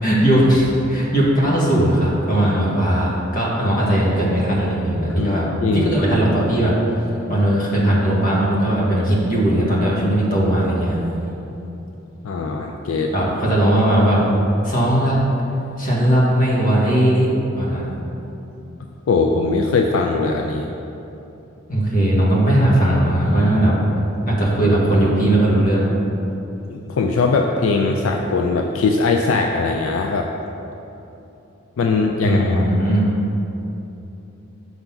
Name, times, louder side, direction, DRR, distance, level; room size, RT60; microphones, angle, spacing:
voice 1, 0.0-5.4 5.7-6.7 7.3-11.0 13.1-14.2 14.6-15.2 15.8-17.9 21.7-23.7 24.2-25.9 32.2-33.1, right 1 dB, 40° left, -5 dB, 1.4 m, -18 dB
voice 2, 5.6-5.9 11.5-11.6 12.2-13.1 19.1-20.7 26.7-30.3 31.8-32.7, left 4 dB, 75° left, 2 dB, 0.4 m, -20 dB
5.7 x 3.9 x 5.7 m, 3.0 s
head